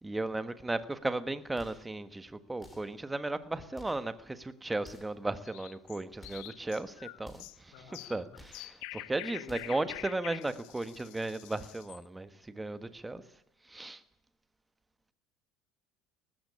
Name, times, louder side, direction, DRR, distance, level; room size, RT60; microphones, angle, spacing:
voice 1, 0.0-7.7 8.1-8.2 8.6-13.2 13.7-14.0, right 2 dB, 10° right, 1.3 m, -35 dB
sound 1, 1.5-1.9 2.6-3.0 3.7-4.1 4.8-5.2 6.2-6.6 7.2-7.6 8.3-8.7 9.4-9.9, left 2 dB, 10° left, 4.5 m, -54 dB
sound 2, 5.4-12.0, left 20 dB, 75° left, 1.0 m, -46 dB
voice 2, 7.7-8.4 9.3-10.1, left 7 dB, 90° left, 4.8 m, -53 dB
19.5 x 15.5 x 8.6 m
cardioid pair, 145°, 0 cm